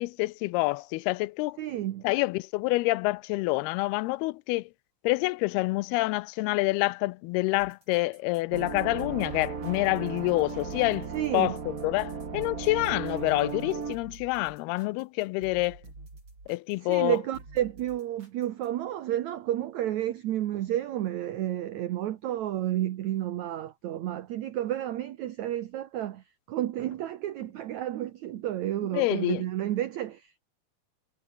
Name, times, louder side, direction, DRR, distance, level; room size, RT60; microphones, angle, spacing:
voice 1, 0.0-1.6 2.0-4.7 5.0-11.1 11.3-11.5 11.8-15.8 16.5-17.2 28.9-29.4, left 22 dB, 85° left, 2.5 m, -27 dB
voice 2, 1.6-2.0 11.1-11.6 16.8-26.2 26.5-30.4, right 12 dB, 75° right, 1.7 m, -31 dB
sound 1, 7.5-18.8, right 2 dB, 30° right, 7.3 m, -49 dB
sound 2, 8.5-14.0, right 5 dB, 45° right, 1.1 m, -36 dB
omnidirectional pair, 4.6 m